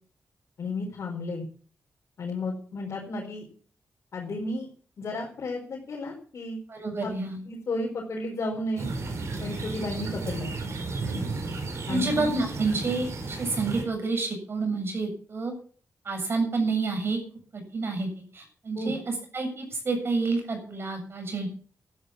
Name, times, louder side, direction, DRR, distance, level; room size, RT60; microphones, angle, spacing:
voice 1, 0.6-1.5 2.2-3.4 4.1-4.7 5.0-6.6 7.0-7.1 7.4-8.9 9.4-10.5 11.9-12.2 18.8-18.9, left 2 dB, 70° left, -2 dB, 4.4 m, -32 dB
voice 2, 6.7-7.4 11.9-15.5 16.0-17.2 17.5-18.1 18.3-19.0 19.3-21.5, right 3 dB, 50° right, 4 dB, 7.6 m, -29 dB
sound 1, 8.8-13.8, right 3 dB, 70° right, 4.6 m, -33 dB
13.0 x 12.0 x 7.1 m, 0.44 s
wide cardioid pair, 95°, 5 cm